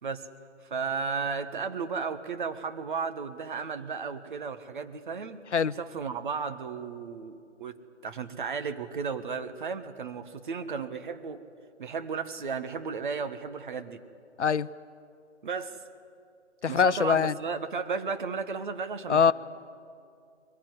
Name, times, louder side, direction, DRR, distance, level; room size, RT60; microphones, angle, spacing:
voice 1, 0.6-7.8 8.0-11.4 11.8-14.0 15.4-15.8 16.7-19.3, right 5 dB, 45° right, 9 dB, 1.4 m, -34 dB
voice 2, 16.6-17.3 19.1-19.3, left 6 dB, 70° left, 17 dB, 0.7 m, -23 dB
22.0 x 19.5 x 9.7 m, 2.4 s
figure-of-eight pair, 145°, 36 cm